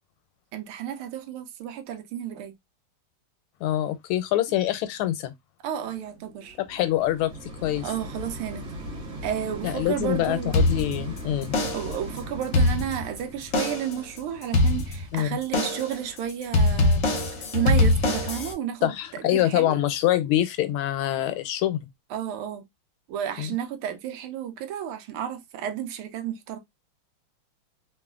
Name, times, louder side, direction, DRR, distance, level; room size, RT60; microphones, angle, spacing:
voice 1, 0.5-2.5 5.6-6.6 7.8-8.7 9.2-10.5 11.7-17.0 17.5-19.7 22.1-22.6 23.1-26.6, right 9 dB, 85° right, 1.5 m, -32 dB
voice 2, 3.6-5.3 6.7-7.3 7.6-7.9 9.6-11.5 15.1-15.4 18.8-21.9 23.4-23.5, left 13 dB, 90° left, 1.5 m, -25 dB
sound 1, 5.9-17.2 17.8-17.9, equal, 55° right, 1.6 m, -40 dB
sound 2, 10.5-11.2 11.5-12.0 12.4-13.2 13.5-14.0 14.5-15.2 15.5-16.0 16.5-18.5, left 2 dB, 60° left, 0.8 m, -23 dB
3.6 x 2.3 x 2.3 m
omnidirectional pair, 2.3 m